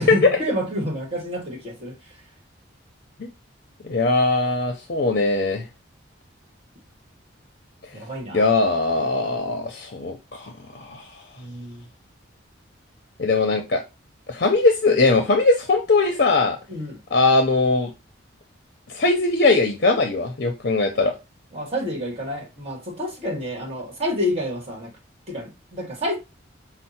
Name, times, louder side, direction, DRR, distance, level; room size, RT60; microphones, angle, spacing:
voice 1, 0.0-2.0 7.9-8.5 11.4-11.8 16.7-17.0 21.5-24.9 25.3-26.2, equal, 30° right, 1.5 m, -29 dB
voice 2, 3.8-5.7 8.3-11.0 13.2-13.8 14.3-16.6 17.1-17.9 18.9-21.1, left 3 dB, 55° left, 0.6 m, -20 dB
5.5 x 2.0 x 4.2 m
head